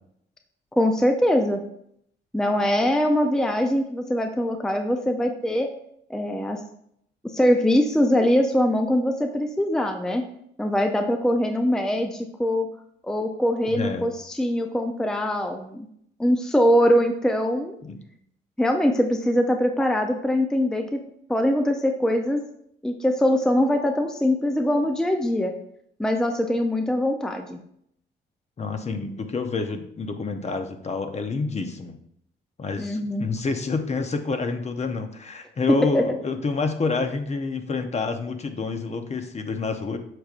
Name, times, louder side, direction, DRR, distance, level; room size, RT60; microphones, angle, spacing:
voice 1, 0.8-1.6 2.3-5.7 6.1-6.6 7.3-10.2 10.6-12.7 13.0-15.9 16.2-17.8 18.6-21.0 21.3-22.4 22.8-25.5 26.0-27.6 32.8-33.3 35.7-36.2, equal, 5° left, 5 dB, 0.5 m, -22 dB
voice 2, 13.8-14.1 17.8-18.0 28.6-32.0 32.6-40.0, left 4 dB, 35° left, 7 dB, 0.8 m, -28 dB
7.7 x 5.2 x 2.5 m, 0.70 s
cardioid pair, 90°, 20 cm